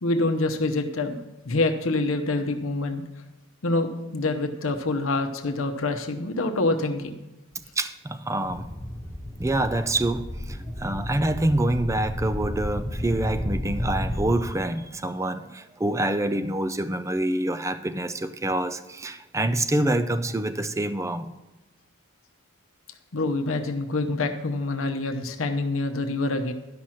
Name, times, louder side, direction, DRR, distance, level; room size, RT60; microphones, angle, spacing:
voice 1, 0.0-1.2 1.4-3.0 3.6-7.2 23.1-26.5, left 2 dB, 70° left, 4 dB, 0.8 m, -26 dB
voice 2, 7.8-8.7 9.4-21.3, right 1 dB, 15° right, 11 dB, 0.4 m, -26 dB
sound 1, 8.4-14.3, left 1 dB, 10° left, 1.6 m, -32 dB
11.5 x 5.8 x 6.3 m, 0.99 s
head